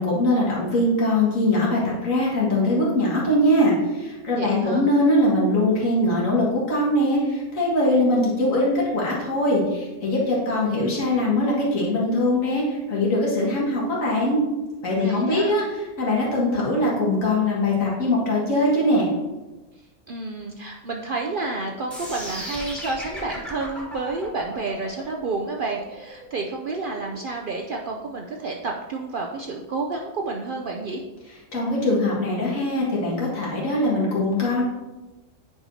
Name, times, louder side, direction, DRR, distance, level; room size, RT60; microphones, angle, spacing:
voice 1, 0.0-14.4 14.8-15.7 16.0-19.1 31.5-34.6, left 1 dB, 75° left, -5 dB, 2.1 m, -22 dB
voice 2, 4.3-4.8 14.9-15.5 20.1-31.0, right 3 dB, 60° right, 1 dB, 0.5 m, -30 dB
sound 1, 21.9-27.9, equal, ahead, 1.3 m, -37 dB
9.3 x 4.7 x 2.7 m, 1.1 s
omnidirectional pair, 1.4 m